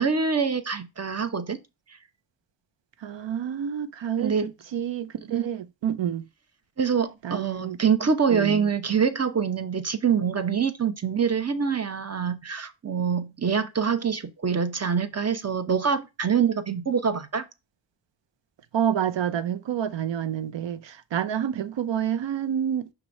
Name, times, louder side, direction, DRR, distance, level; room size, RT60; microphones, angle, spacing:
voice 1, 0.0-1.6 4.2-4.5 5.3-5.4 6.8-17.4, right 6 dB, 35° right, 0.8 m, -25 dB
voice 2, 3.0-6.2 7.2-7.8 8.3-8.7 18.7-22.9, right 9 dB, 75° right, 0.7 m, -28 dB
6.0 x 3.1 x 5.2 m
cardioid pair, 65°, 44 cm